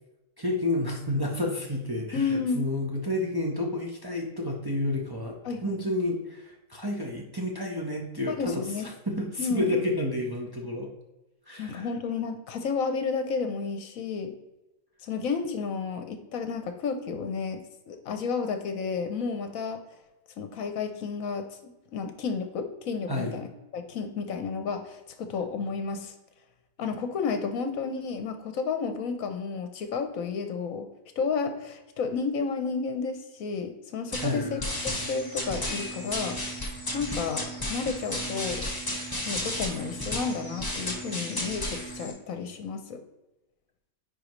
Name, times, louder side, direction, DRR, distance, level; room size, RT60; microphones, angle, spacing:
voice 1, 0.4-5.4 5.6-10.9 11.5-11.9 23.1-23.3 34.2-34.5, left 1 dB, 20° right, -1 dB, 0.8 m, -30 dB
voice 2, 2.1-2.7 5.4-6.0 8.3-8.9 9.4-9.8 11.6-14.4 15.0-19.8 20.4-23.5 23.7-26.1 26.8-30.9 31.2-36.4 36.9-38.7 39.2-43.0, left 5 dB, 70° left, 7 dB, 1.1 m, -31 dB
sound 1, 34.1-42.1, left 1 dB, 15° left, 1.5 m, -33 dB
9.9 x 4.2 x 3.1 m, 0.99 s
omnidirectional pair, 1.6 m